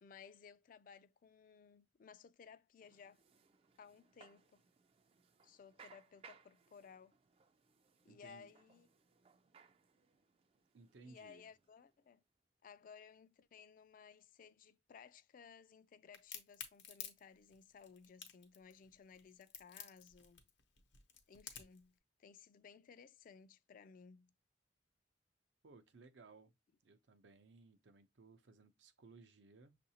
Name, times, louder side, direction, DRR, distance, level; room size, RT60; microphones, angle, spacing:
voice 1, 0.0-3.2 3.8-4.6 5.4-7.2 8.0-8.9 11.0-12.2 12.6-20.5 21.3-24.3, left 6 dB, 50° left, 0.3 m, -59 dB
sound 1, 2.8-12.1, right 6 dB, 35° right, 0.4 m, -66 dB
voice 2, 8.1-8.5 10.7-11.5 25.6-26.5 26.8-29.8, right 3 dB, 80° right, 0.6 m, -61 dB
Crack, 16.1-21.8, left 8 dB, 80° left, 0.9 m, -51 dB
6.3 x 2.5 x 2.8 m
head